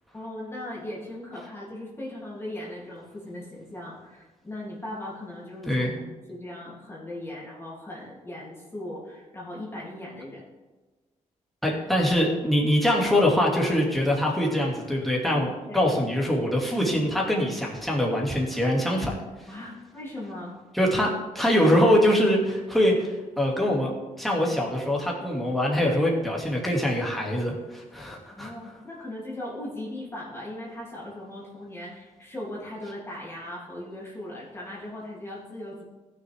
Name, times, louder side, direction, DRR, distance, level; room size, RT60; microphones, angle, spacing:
voice 1, 0.1-5.9 6.3-10.4 15.6-15.8 19.5-20.5 28.3-35.8, left 1 dB, 20° left, -6 dB, 3.1 m, -38 dB
voice 2, 5.7-6.0 11.6-19.2 20.7-23.9 24.2-28.5, left 1 dB, ahead, -3 dB, 2.5 m, -23 dB
15.0 x 6.5 x 3.6 m, 1.2 s
cardioid pair, 100°, 13 cm